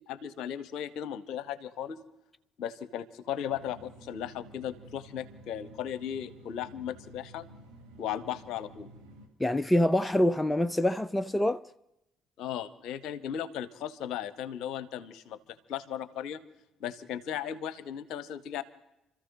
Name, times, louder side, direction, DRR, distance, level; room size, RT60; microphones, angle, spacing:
voice 1, 0.1-2.0 2.6-7.4 8.0-8.9 12.4-15.4 15.7-16.4 16.8-18.6, left 10 dB, 60° left, 0.9 m, -36 dB
sound 1, 3.5-9.3, right 1 dB, 70° right, 2.2 m, -52 dB
voice 2, 9.4-11.6, left 1 dB, 10° left, 0.5 m, -25 dB
30.0 x 14.0 x 2.8 m
figure-of-eight pair, 50°, 0 cm